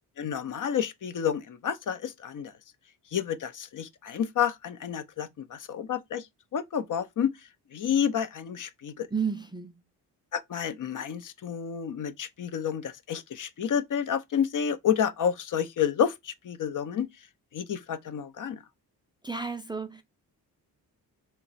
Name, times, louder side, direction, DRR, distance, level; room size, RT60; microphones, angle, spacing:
voice 1, 0.2-2.5 3.1-6.3 6.5-7.3 7.7-9.1 10.3-17.1 17.5-18.6, left 8 dB, 55° left, 0.6 m, -30 dB
voice 2, 9.1-9.7 19.2-20.0, right 5 dB, 10° right, 0.4 m, -32 dB
2.9 x 2.2 x 4.0 m
cardioid pair, 65°, 39 cm